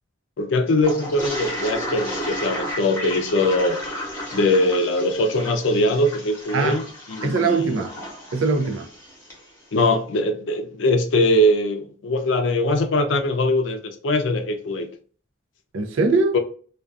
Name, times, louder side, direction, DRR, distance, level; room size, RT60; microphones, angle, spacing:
voice 1, 0.4-3.8 4.3-7.8 9.7-14.9 16.3-16.4, left 1 dB, 70° left, 0.4 m, -21 dB
Toilet flush, 0.8-9.4, equal, 10° left, 0.8 m, -33 dB
voice 2, 7.2-7.9 8.3-8.9 15.7-16.3, right 4 dB, 80° right, 0.4 m, -21 dB
2.3 x 2.3 x 2.5 m
head